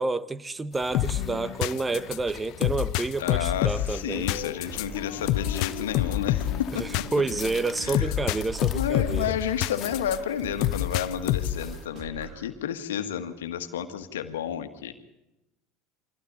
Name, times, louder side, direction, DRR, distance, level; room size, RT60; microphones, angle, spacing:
voice 1, 0.0-4.3 6.7-9.3, right 3 dB, 15° right, 1.0 m, -29 dB
sound 1, 0.7-11.8, left 8 dB, 40° left, 2.3 m, -44 dB
sound 2, 0.9-10.2 10.6-11.7, left 15 dB, 60° left, 0.7 m, -28 dB
voice 2, 3.2-7.0 7.8-8.1 8.7-14.9, left 9 dB, 75° left, 1.7 m, -31 dB
sound 3, 4.1-12.5, right 7 dB, 50° right, 2.5 m, -42 dB
29.0 x 24.0 x 4.2 m
hypercardioid pair, 75°, 0 cm